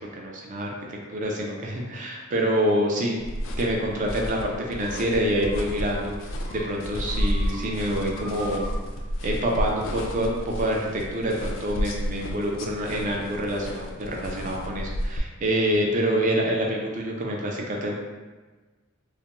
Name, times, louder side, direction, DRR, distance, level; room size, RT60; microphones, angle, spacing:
voice 1, 0.2-3.2 3.6-6.2 6.5-8.7 9.2-18.0, equal, 40° right, -1 dB, 0.4 m, -26 dB
sound 1, 3.2-15.2, equal, 65° left, 0.3 m, -32 dB
sound 2, 3.9-4.5 4.8-5.0 5.4-5.6 5.9-6.7 7.0-7.6 7.9-8.7, equal, 75° right, 1.1 m, -43 dB
2.4 x 2.1 x 2.9 m, 1.3 s
head